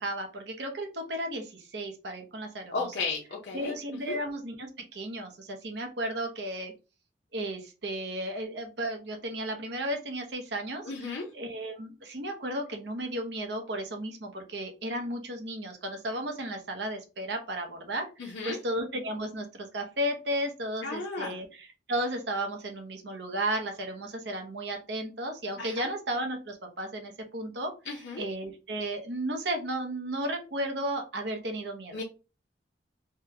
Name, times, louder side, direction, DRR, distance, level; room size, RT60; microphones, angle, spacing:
voice 1, 0.0-3.1 3.5-6.7 7.3-32.0, right 1 dB, 75° right, 4 dB, 0.8 m, -34 dB
voice 2, 2.7-3.7 4.1-4.2 10.8-11.2 18.2-18.6 20.8-21.4 25.6-25.9 27.9-28.2 31.9-32.0, left 4 dB, 85° left, -3 dB, 0.7 m, -34 dB
3.5 x 2.2 x 2.8 m, 0.31 s
head